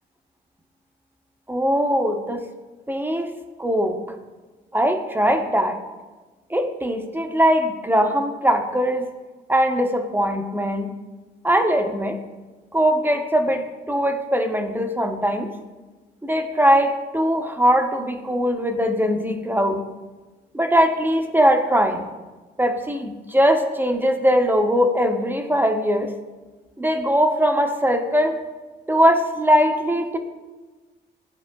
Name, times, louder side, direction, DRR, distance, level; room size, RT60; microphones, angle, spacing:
voice 1, 1.5-2.4 2.9-3.3 3.6-4.0 4.7-5.8 6.5-9.1 9.5-10.9 11.4-12.2 12.7-15.5 16.2-19.8 20.5-22.0 22.6-26.1 26.8-28.4 28.9-30.2, equal, 10° right, 5 dB, 0.6 m, -20 dB
11.5 x 4.7 x 2.2 m, 1.3 s
cardioid pair, 90°, 20 cm